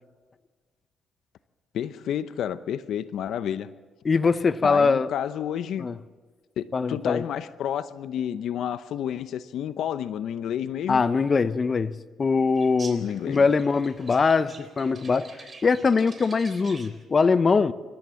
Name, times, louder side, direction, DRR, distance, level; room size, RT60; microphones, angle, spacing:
voice 1, 1.7-3.7 4.6-5.9 6.6-11.0 13.0-13.5, left 9 dB, 75° left, 13 dB, 0.7 m, -30 dB
voice 2, 4.0-5.1 5.8-5.9 6.7-7.2 10.9-11.9 12.2-15.3 15.6-17.7, left 4 dB, 35° left, 13 dB, 0.8 m, -22 dB
sound 1, 12.5-17.0, right 4 dB, 35° right, 3.5 m, -46 dB
26.0 x 14.0 x 7.6 m, 1.5 s
cardioid pair, 90°, 0 cm